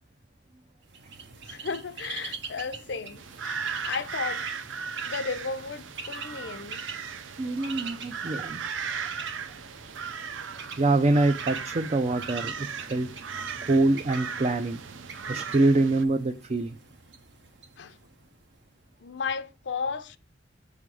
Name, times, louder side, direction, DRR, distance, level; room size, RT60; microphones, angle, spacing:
Bird, 0.9-18.6, right 5 dB, 70° right, 1.1 m, -44 dB
voice 1, 1.5-4.5 5.0-6.8 17.8-18.0 19.0-20.2, left 5 dB, 65° left, 0.6 m, -34 dB
sound 1, 3.2-16.0, right 6 dB, 85° right, 0.6 m, -37 dB
voice 2, 7.4-8.6 10.8-13.1 13.6-14.8 15.3-16.8, right 2 dB, 35° right, 0.4 m, -25 dB
6.7 x 3.6 x 6.1 m
head